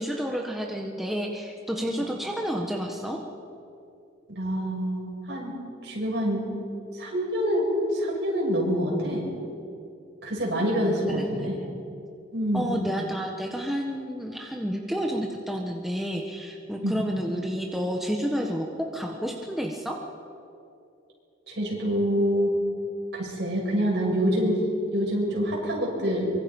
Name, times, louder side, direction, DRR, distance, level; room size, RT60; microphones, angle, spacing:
voice 1, 0.0-3.2 11.1-11.7 12.5-20.0, equal, ahead, 0 dB, 1.4 m, -30 dB
voice 2, 4.4-5.6 5.8-6.5 6.9-9.3 10.2-11.5 12.3-12.7 16.8-17.0 21.5-22.6 23.1-24.7 24.9-26.3, equal, 60° right, -3 dB, 7.2 m, -26 dB
24.0 x 24.0 x 5.5 m, 2.6 s
head